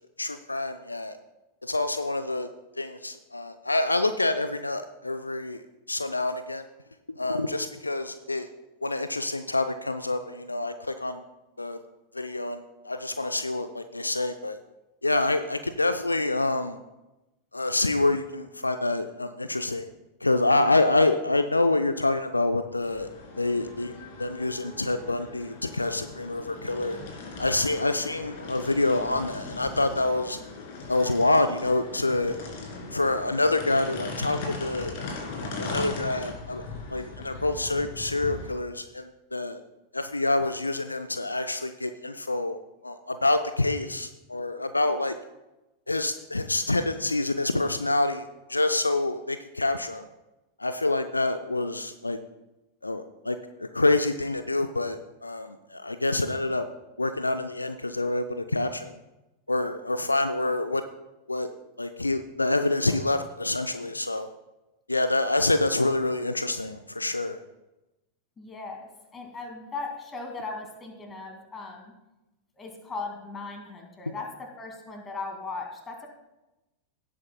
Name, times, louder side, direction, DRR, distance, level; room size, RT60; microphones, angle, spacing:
voice 1, 0.2-1.2 1.6-2.5 2.8-6.7 7.2-8.5 8.8-11.2 11.6-11.8 12.1-14.6 15.0-16.8 17.5-19.9 20.2-23.1 23.4-27.0 27.4-30.4 30.9-32.4 32.9-34.9 35.6-39.6 39.9-42.6 42.8-45.2 45.9-50.1 50.6-52.2 52.8-56.7 57.0-59.0 59.5-60.8 61.3-61.5 61.8-64.3 64.9-67.4, left 2 dB, 80° left, 10 dB, 0.4 m, -27 dB
sound 1, 22.8-38.5, left 3 dB, 50° left, 2.5 m, -39 dB
voice 2, 68.4-71.9 72.5-76.1, left 3 dB, 20° left, 3 dB, 2.1 m, -38 dB
17.0 x 8.6 x 2.2 m, 0.99 s
figure-of-eight pair, 90°, 0 cm